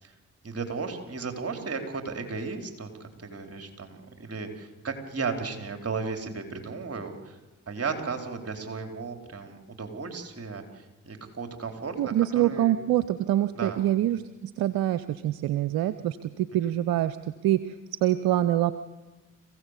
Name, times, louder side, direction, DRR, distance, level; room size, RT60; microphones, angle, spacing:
voice 1, 0.4-7.4 7.7-12.0 12.3-12.7 13.5-13.8 16.6-16.7, right 4 dB, 40° right, 5 dB, 4.2 m, -35 dB
voice 2, 12.0-17.2 17.4-17.7 18.0-18.7, right 13 dB, 70° right, 14 dB, 0.8 m, -25 dB
26.5 x 16.0 x 8.3 m, 1.1 s
hypercardioid pair, 45°, 37 cm